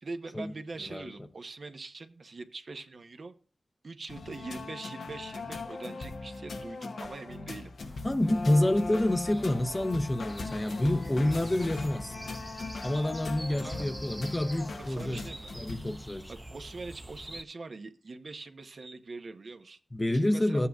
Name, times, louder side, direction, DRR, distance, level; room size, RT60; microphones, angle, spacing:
voice 1, 0.0-3.3 3.8-7.7 13.3-13.9 14.8-15.5 16.3-19.8 20.1-20.6, right 3 dB, 65° right, 0.8 m, -43 dB
sound 1, 4.1-16.0, left 3 dB, 85° left, 0.8 m, -40 dB
sound 2, 7.8-17.4, right 1 dB, 15° right, 0.6 m, -45 dB
voice 2, 8.0-12.1 12.8-15.3 15.5-16.3 19.9-20.7, left 1 dB, 30° left, 0.6 m, -28 dB
13.5 x 8.3 x 2.4 m
cardioid pair, 45°, 0 cm